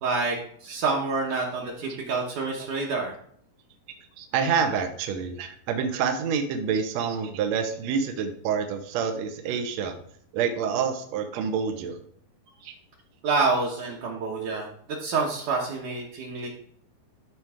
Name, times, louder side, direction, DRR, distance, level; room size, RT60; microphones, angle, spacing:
voice 1, 0.0-3.1 12.6-12.7 13.2-16.5, right 4 dB, 65° right, -2 dB, 2.2 m, -28 dB
voice 2, 4.2-10.0 10.3-12.0 12.6-12.7, right 6 dB, 90° right, 5 dB, 1.5 m, -27 dB
13.0 x 4.6 x 3.6 m, 0.64 s
omnidirectional pair, 4.5 m